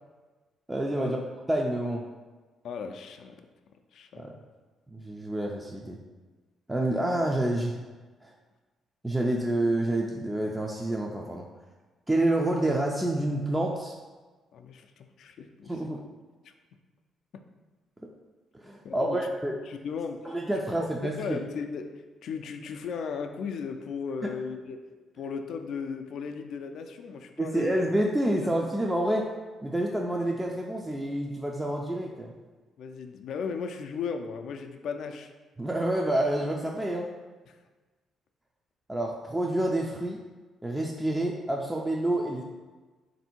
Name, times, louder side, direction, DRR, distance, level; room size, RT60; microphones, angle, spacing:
voice 1, 0.7-1.2 1.5-2.0 4.2-4.3 4.9-6.0 6.7-7.8 8.2-8.3 9.0-11.5 12.1-13.9 15.7-16.0 18.5-19.6 20.2-21.4 24.2-24.3 27.4-29.3 29.6-32.3 35.6-37.1 38.9-40.2 40.6-42.4, right 1 dB, 10° right, -1 dB, 0.4 m, -28 dB
voice 2, 2.6-3.5 3.9-4.2 14.5-15.8 18.8-19.2 19.7-20.3 20.8-20.9 21.2-21.9 22.2-24.8 25.1-27.7 28.4-28.5 32.8-35.3 37.5-37.6, left 6 dB, 70° left, 5 dB, 0.3 m, -36 dB
3.5 x 2.6 x 4.3 m, 1.3 s
cardioid pair, 90°, 0 cm